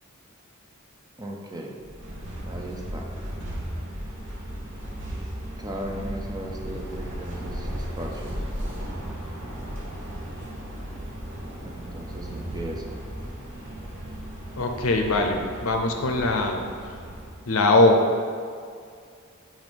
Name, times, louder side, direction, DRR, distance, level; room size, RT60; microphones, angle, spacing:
voice 1, 1.2-1.8 2.5-3.1 5.6-8.3 11.6-13.0, right 1 dB, 20° right, 0 dB, 0.5 m, -37 dB
sound 1, 1.8-17.5, equal, 60° right, 1.0 m, -36 dB
voice 2, 14.6-16.6 17.5-18.0, left 2 dB, 70° left, 4 dB, 0.6 m, -21 dB
7.7 x 2.6 x 5.2 m, 2.2 s
head